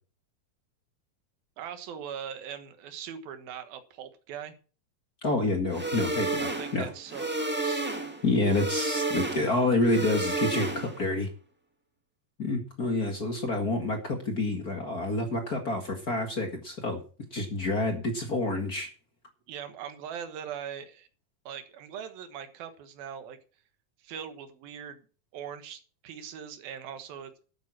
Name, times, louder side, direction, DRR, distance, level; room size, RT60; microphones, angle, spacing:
voice 1, 1.6-4.6 6.4-7.9 19.5-21.1 21.5-23.4 24.0-25.0 25.3-27.4, right 8 dB, 85° right, 9 dB, 3.2 m, -41 dB
voice 2, 5.2-6.9 8.2-11.3 12.4-17.0 17.3-18.9, left 2 dB, 35° left, 4 dB, 1.5 m, -28 dB
sound 1, 5.7-11.1, right 2 dB, 15° right, 0.4 m, -31 dB
11.5 x 9.0 x 6.1 m, 0.38 s
omnidirectional pair, 4.1 m